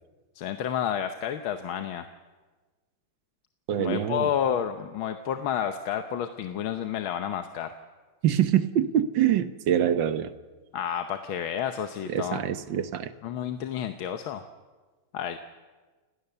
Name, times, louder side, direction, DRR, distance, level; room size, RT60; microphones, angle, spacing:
voice 1, 0.3-2.1 3.8-7.7 10.7-12.4 13.2-14.4 15.1-15.4, left 9 dB, 80° left, 8 dB, 1.7 m, -30 dB
voice 2, 3.7-4.3 8.2-10.3 12.1-13.1, right 10 dB, 65° right, 12 dB, 1.6 m, -25 dB
29.5 x 18.0 x 6.8 m, 1.3 s
omnidirectional pair, 2.2 m